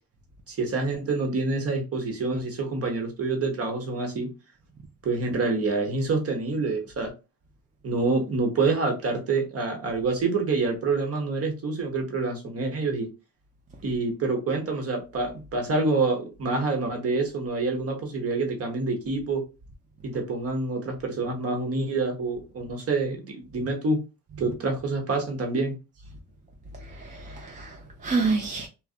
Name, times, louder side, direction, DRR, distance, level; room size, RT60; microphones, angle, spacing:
voice 1, 0.5-4.3 5.0-7.1 7.8-13.1 13.8-19.4 20.0-24.0 24.4-25.8, right 3 dB, 40° right, 1.0 m, -27 dB
voice 2, 26.7-28.7, right 4 dB, 25° right, 0.4 m, -29 dB
2.5 x 2.0 x 2.4 m
cardioid pair, 90°, 35 cm